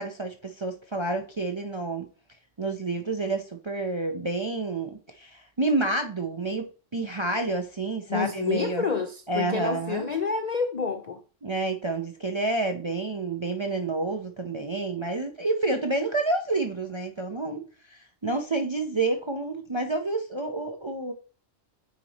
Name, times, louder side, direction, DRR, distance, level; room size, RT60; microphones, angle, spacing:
voice 1, 0.0-2.1 2.6-8.9 9.3-10.1 11.4-21.1, right 2 dB, 35° right, 0.5 m, -29 dB
voice 2, 8.1-11.2, left 5 dB, 50° left, 0.5 m, -28 dB
8.9 x 3.1 x 4.0 m
omnidirectional pair, 1.3 m